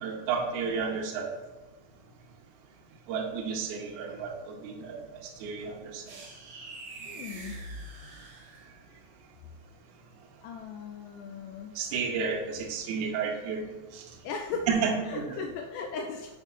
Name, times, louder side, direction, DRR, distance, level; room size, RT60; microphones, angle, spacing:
voice 1, 0.0-1.3 3.1-5.0 5.2-6.2 11.8-13.6 13.9-14.0 14.7-15.4, right 5 dB, 75° right, 0 dB, 2.0 m, -31 dB
sound 1, 6.1-8.9, right 2 dB, 55° right, 1.7 m, -44 dB
voice 2, 7.1-7.6 10.4-11.7 14.2-14.7 15.1-16.4, left 5 dB, 85° left, 3 dB, 1.8 m, -37 dB
5.9 x 4.5 x 5.1 m, 1.2 s
omnidirectional pair, 4.2 m